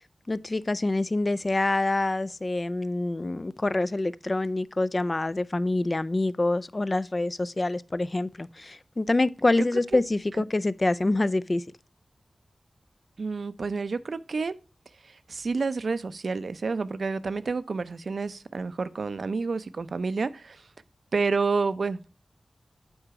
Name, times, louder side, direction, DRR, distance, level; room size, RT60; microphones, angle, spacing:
voice 1, 0.3-11.6, left 2 dB, 35° left, 0.3 m, -26 dB
voice 2, 13.2-14.5 15.3-20.6 21.1-22.1, right 4 dB, 70° right, 0.5 m, -29 dB
8.8 x 3.9 x 4.6 m
wide cardioid pair, 105°, 0 cm